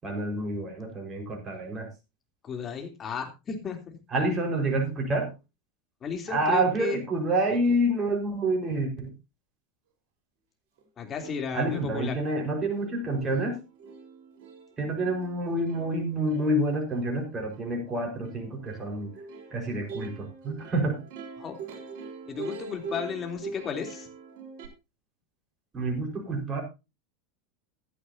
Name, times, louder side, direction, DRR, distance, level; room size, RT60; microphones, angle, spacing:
voice 1, 0.0-1.9 4.1-5.3 6.3-9.1 11.5-13.6 14.8-19.1 19.5-21.0 25.7-26.6, right 1 dB, 25° right, 1 dB, 4.8 m, -28 dB
voice 2, 2.4-4.0 6.0-7.0 11.0-12.1 21.4-21.6 22.3-24.1, left 6 dB, 30° left, 4 dB, 3.2 m, -34 dB
Plucked string instrument, 10.8-10.9 11.1-24.7, right 3 dB, 50° right, 4.1 m, -44 dB
15.5 x 11.0 x 2.8 m, 0.27 s
figure-of-eight pair, 80°, 0 cm